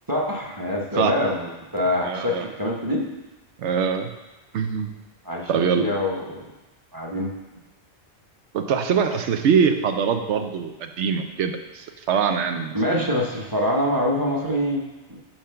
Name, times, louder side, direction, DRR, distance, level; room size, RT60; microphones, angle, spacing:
voice 1, 0.1-3.0 5.2-6.4 6.9-7.6 12.7-14.8 15.1-15.2, left 1 dB, 20° right, -2 dB, 0.9 m, -25 dB
voice 2, 2.0-2.5 3.6-4.1 4.5-4.9 5.5-5.9 8.5-13.1, right 6 dB, 90° right, 7 dB, 0.9 m, -23 dB
5.7 x 5.0 x 5.6 m, 1.1 s
omnidirectional pair, 1.1 m